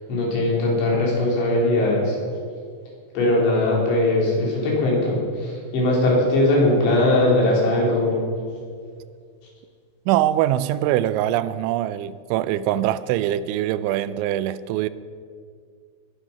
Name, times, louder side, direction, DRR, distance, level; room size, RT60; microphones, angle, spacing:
voice 1, 0.1-2.2 3.2-8.2, left 1 dB, 75° left, 5.9 m, -20 dB
voice 2, 10.1-14.9, right 13 dB, 90° right, 3.0 m, -23 dB
20.5 x 9.4 x 5.7 m
omnidirectional pair, 5.3 m